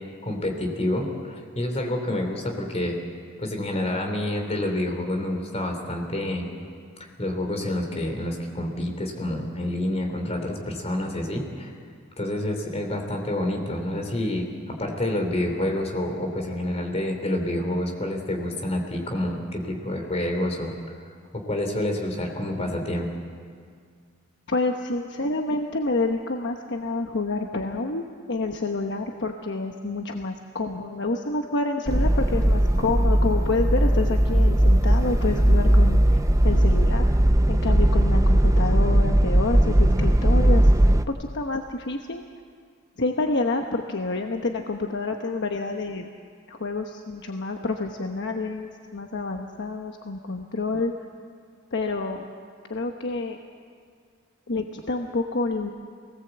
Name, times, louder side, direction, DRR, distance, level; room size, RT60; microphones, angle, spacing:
voice 1, 0.0-3.0 3.4-6.5 7.2-11.7 12.2-20.7 21.3-23.1, left 1 dB, 30° left, 3 dB, 3.2 m, -28 dB
voice 2, 24.5-36.2 36.4-37.0 37.5-42.2 43.0-46.1 46.5-50.9 51.7-52.2 52.7-53.4 54.5-55.7, left 3 dB, 60° left, 3 dB, 1.1 m, -28 dB
sound 1, 31.9-41.1, right 1 dB, 15° right, 0.6 m, -19 dB
24.0 x 18.0 x 8.0 m, 2.1 s
head